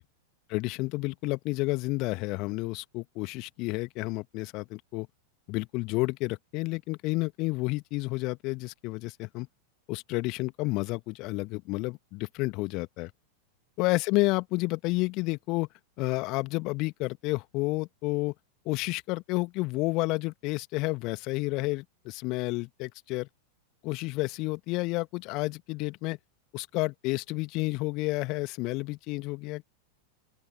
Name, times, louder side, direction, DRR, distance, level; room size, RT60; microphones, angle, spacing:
voice 1, 0.5-5.1 5.5-9.5 9.9-13.1 13.8-15.7 16.0-18.3 18.6-23.3 23.8-26.2 26.5-29.7, left 24 dB, 40° left, 1.8 m, -30 dB
open air
figure-of-eight pair, 90°, 0 cm